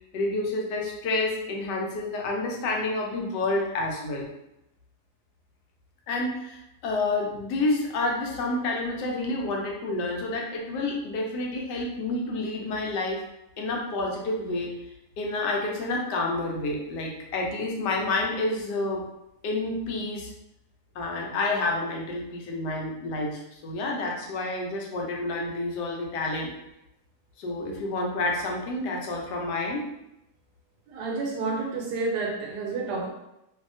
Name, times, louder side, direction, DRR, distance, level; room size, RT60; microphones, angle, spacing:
voice 1, 0.1-4.3 6.1-13.2 13.6-14.7 15.2-19.0 19.4-20.3 20.9-26.5 27.4-29.9, left 2 dB, 85° left, 0 dB, 1.2 m, -29 dB
voice 2, 30.9-33.1, right 3 dB, 75° right, 0 dB, 1.2 m, -30 dB
2.7 x 2.7 x 2.5 m, 0.87 s
omnidirectional pair, 1.8 m